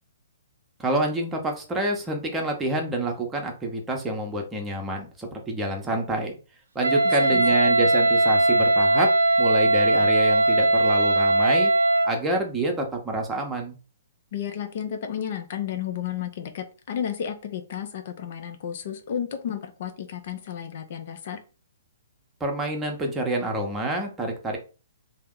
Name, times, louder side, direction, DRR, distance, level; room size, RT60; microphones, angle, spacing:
voice 1, 0.8-6.3 6.7-9.1 9.4-11.7 12.0-13.8 22.4-24.6, right 2 dB, 15° right, 2 dB, 0.8 m, -27 dB
Wind instrument woodwind instrument, 6.8-12.2, right 1 dB, 80° right, 0.4 m, -20 dB
voice 2, 14.3-21.4, left 9 dB, 55° left, 6 dB, 0.5 m, -32 dB
2.7 x 2.1 x 3.6 m, 0.34 s
hypercardioid pair, 125°, 0 cm